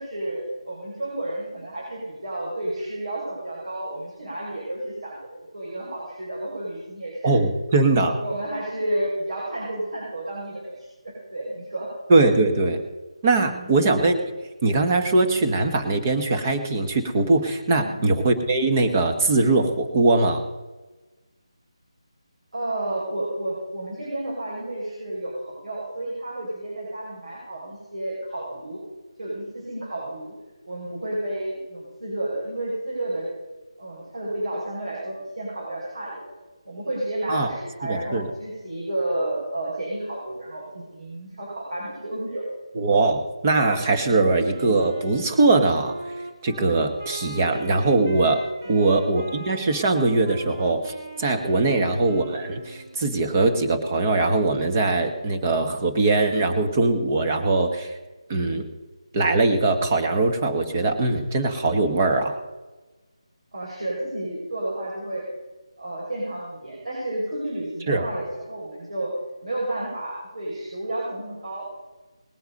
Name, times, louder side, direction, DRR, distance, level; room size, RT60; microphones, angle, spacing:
voice 1, 0.0-7.3 8.2-11.9 13.4-13.7 17.7-18.0 22.5-28.8 29.2-30.3 30.6-33.3 33.8-36.3 36.6-42.5 48.6-48.9 51.7-51.9 63.5-65.2 65.8-69.1 69.4-71.7, right 1 dB, 80° right, -6 dB, 5.6 m, -31 dB
voice 2, 7.2-8.2 12.1-12.8 13.2-14.2 14.6-20.4 37.3-37.5 37.9-38.3 42.7-46.0 46.4-48.4 48.7-50.9 51.2-57.9 58.3-58.7 59.1-62.4 67.9-68.0, right 3 dB, 20° right, 5 dB, 1.4 m, -21 dB
Wind instrument woodwind instrument, 44.2-53.1, right 2 dB, 40° right, 1.9 m, -41 dB
20.0 x 8.0 x 5.4 m, 1.2 s
figure-of-eight pair, 175°, 3 cm